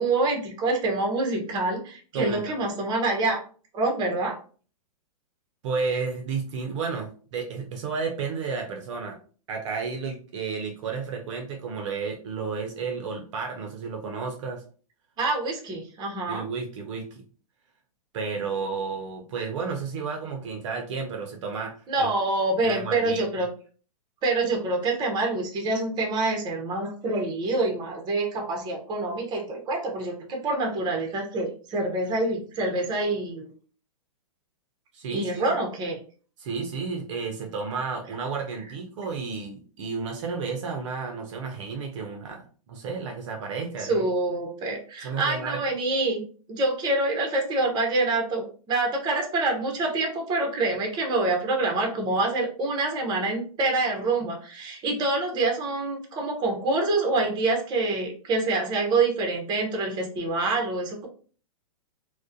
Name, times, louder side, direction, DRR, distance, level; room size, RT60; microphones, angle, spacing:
voice 1, 0.0-3.4 3.7-4.4 15.2-16.5 21.9-23.5 24.2-33.5 35.1-36.0 43.8-46.2 46.5-61.1, right 2 dB, 20° right, 1 dB, 0.7 m, -26 dB
voice 2, 5.6-9.2 9.5-14.6 16.3-17.2 18.1-22.1 22.6-23.4 34.9-35.6 36.4-44.0 45.0-45.6, right 5 dB, 55° right, 2 dB, 0.5 m, -32 dB
2.3 x 2.1 x 2.6 m, 0.41 s
hypercardioid pair, 125°, 19 cm